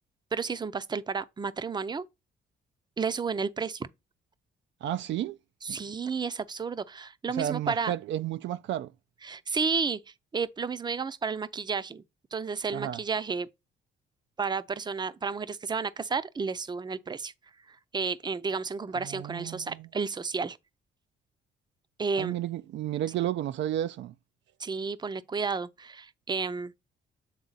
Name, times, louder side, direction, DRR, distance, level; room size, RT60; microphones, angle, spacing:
voice 1, 0.3-2.0 3.0-3.9 5.6-7.9 9.2-10.0 10.3-12.0 12.3-13.5 14.4-17.3 17.9-20.6 22.0-22.4 24.6-26.7, right 5 dB, 20° right, 0.5 m, -32 dB
voice 2, 4.8-5.4 5.7-5.8 7.3-8.9 12.7-13.0 18.9-19.9 22.2-24.1, right 12 dB, 70° right, 0.4 m, -32 dB
8.1 x 3.6 x 4.0 m
cardioid pair, 90°, 20 cm